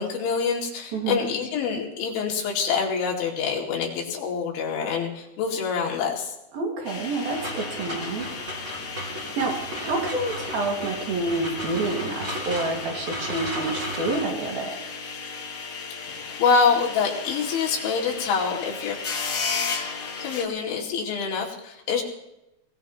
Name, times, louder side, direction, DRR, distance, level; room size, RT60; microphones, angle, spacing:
voice 1, 0.0-6.3 16.4-19.0 20.2-22.0, left 5 dB, 85° left, -2 dB, 4.8 m, -25 dB
voice 2, 6.5-8.3 9.1-14.8, right 3 dB, 60° right, 0 dB, 3.7 m, -28 dB
sound 1, 6.8-20.4, left 5 dB, 65° left, 1.3 m, -35 dB
sound 2, 7.3-14.2, equal, 25° right, 2.1 m, -35 dB
22.5 x 17.0 x 3.0 m, 0.90 s
omnidirectional pair, 5.2 m